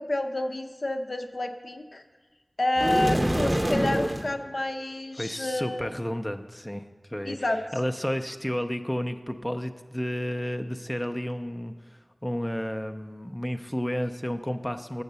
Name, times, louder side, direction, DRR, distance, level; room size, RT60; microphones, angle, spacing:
voice 1, 0.0-2.0 2.6-5.9 7.2-7.6, left 1 dB, 65° left, 5 dB, 0.6 m, -29 dB
sound 1, 2.8-4.3, right 1 dB, 30° right, 0.6 m, -25 dB
voice 2, 5.2-7.5 7.7-15.0, equal, 10° left, 6 dB, 0.4 m, -32 dB
6.8 x 6.4 x 6.7 m, 1.3 s
wide cardioid pair, 45°, 0 cm